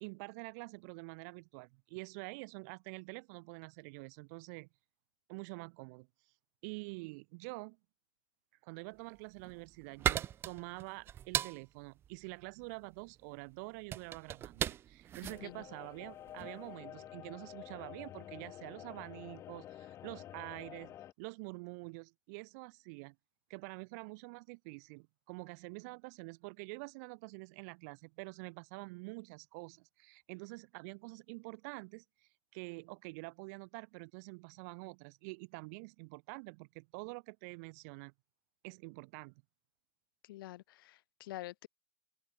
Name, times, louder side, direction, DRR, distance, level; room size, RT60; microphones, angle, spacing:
voice 1, 0.0-4.7 5.3-6.1 6.6-7.8 8.6-23.2 23.5-32.0 32.5-38.1 38.6-39.3, right 30 dB, 45° right, 1.6 m, -47 dB
sound 1, 9.2-16.6, right 10 dB, 20° right, 0.8 m, -38 dB
voice 2, 15.2-15.6 40.3-41.7, left 16 dB, 70° left, 6.5 m, -47 dB
sound 2, 15.3-21.1, left 12 dB, 20° left, 1.3 m, -50 dB
open air
supercardioid pair, 175°, 12 cm